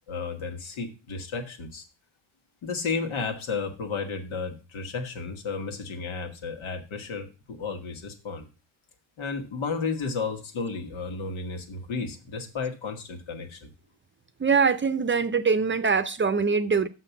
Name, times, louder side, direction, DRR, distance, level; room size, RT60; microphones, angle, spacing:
voice 1, 0.1-1.9 2.6-8.5 9.2-13.7, left 4 dB, 85° left, 1.8 m, -33 dB
voice 2, 14.4-16.9, right 5 dB, 25° right, 0.6 m, -23 dB
6.6 x 5.9 x 6.9 m
cardioid pair, 105°, 45 cm